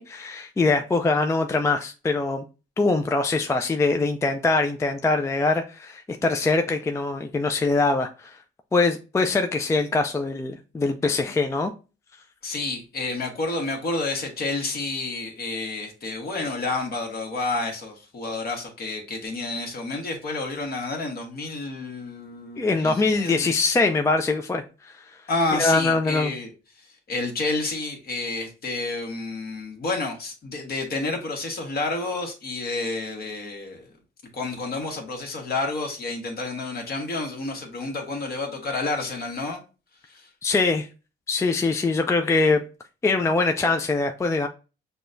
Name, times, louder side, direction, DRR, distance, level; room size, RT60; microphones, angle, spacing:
voice 1, 0.0-2.4 2.8-8.4 8.7-11.7 22.6-25.2 25.5-26.3 40.4-40.9 41.3-42.6 43.0-44.5, left 3 dB, 15° left, 0.3 m, -23 dB
voice 2, 12.4-23.5 25.3-26.5 27.1-33.9 34.3-39.6 40.1-40.3, left 3 dB, 50° left, 1.3 m, -30 dB
6.0 x 2.2 x 2.5 m
cardioid pair, 90°, 20 cm